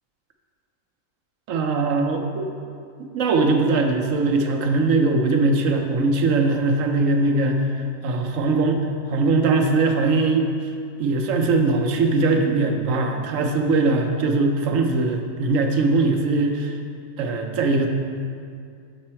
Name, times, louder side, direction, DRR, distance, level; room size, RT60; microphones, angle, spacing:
voice 1, 1.5-2.5 3.1-8.8 9.1-10.4 11.0-16.7 17.2-17.9, right 3 dB, 75° right, 3 dB, 1.1 m, -21 dB
7.0 x 5.4 x 4.3 m, 2.3 s
omnidirectional pair, 1.4 m